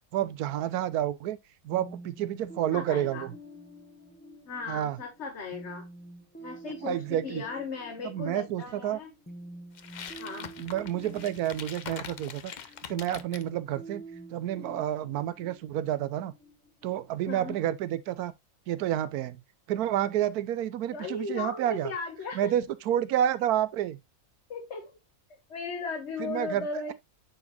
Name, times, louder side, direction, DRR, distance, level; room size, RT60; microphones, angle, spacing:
voice 1, 0.1-1.4 1.6-3.3 4.7-5.0 6.8-7.4 8.0-9.0 10.6-12.5 12.9-14.0 14.3-16.3 16.8-18.3 18.7-19.4 19.7-21.9 22.3-24.0 26.2-26.7, right 11 dB, 85° right, 1.1 m, -29 dB
sound 1, 1.7-17.3, right 1 dB, 10° left, 0.7 m, -48 dB
voice 2, 2.7-3.3 4.5-5.9 6.4-9.1 10.2-10.5 17.3-17.6 20.9-22.5 24.5-24.9 25.5-26.9, left 4 dB, 50° left, 1.4 m, -36 dB
sound 2, 9.7-13.5, left 7 dB, 85° left, 0.4 m, -43 dB
9.6 x 4.1 x 2.8 m
omnidirectional pair, 1.6 m